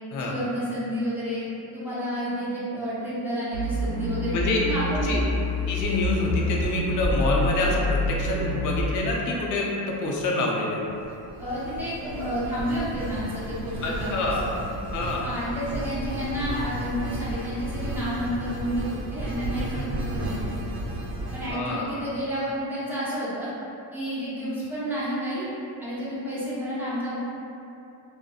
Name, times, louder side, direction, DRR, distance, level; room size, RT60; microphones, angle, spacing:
voice 1, 0.2-1.4 1.7-4.3 4.6-5.1 11.4-14.5 15.2-20.7 21.3-23.5 23.9-25.5 25.8-27.2, equal, 5° right, -10 dB, 0.6 m, -30 dB
sound 1, 3.5-8.8, left 2 dB, 80° left, 0.7 m, -27 dB
voice 2, 5.7-10.8 13.8-14.5 14.9-15.3 19.7-19.9 21.5-21.9, left 2 dB, 45° left, -3 dB, 0.5 m, -27 dB
sound 2, 10.8-21.5, right 1 dB, 55° right, 0.6 m, -33 dB
2.7 x 2.1 x 2.3 m, 2.8 s
cardioid pair, 120°, 44 cm